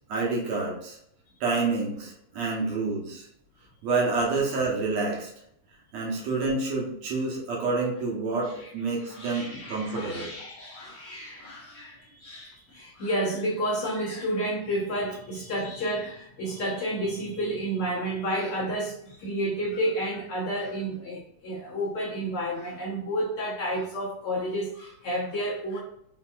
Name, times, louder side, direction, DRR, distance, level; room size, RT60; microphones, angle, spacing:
voice 1, 0.1-1.0 1.4-3.3 3.8-5.3 5.9-10.3, right 3 dB, 70° right, -2 dB, 2.2 m, -28 dB
voice 2, 9.1-25.8, right 1 dB, 55° left, -6 dB, 1.7 m, -31 dB
5.3 x 4.0 x 2.5 m, 0.73 s
omnidirectional pair, 3.4 m